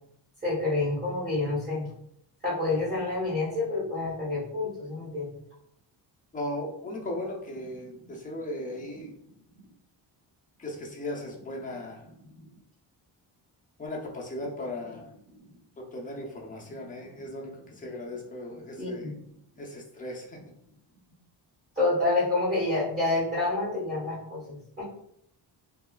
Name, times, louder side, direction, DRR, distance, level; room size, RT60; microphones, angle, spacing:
voice 1, 0.4-1.9 2.4-5.4 8.0-8.1 12.2-12.4 15.3-15.5 16.7-16.8 18.8-19.1 21.8-24.8, left 2 dB, 30° right, -7 dB, 1.1 m, -28 dB
voice 2, 6.3-9.1 10.6-12.0 13.8-15.0 15.8-19.1 19.6-20.4, left 1 dB, 20° left, -2 dB, 0.5 m, -37 dB
2.7 x 2.3 x 2.2 m, 0.73 s
cardioid pair, 135°, 45 cm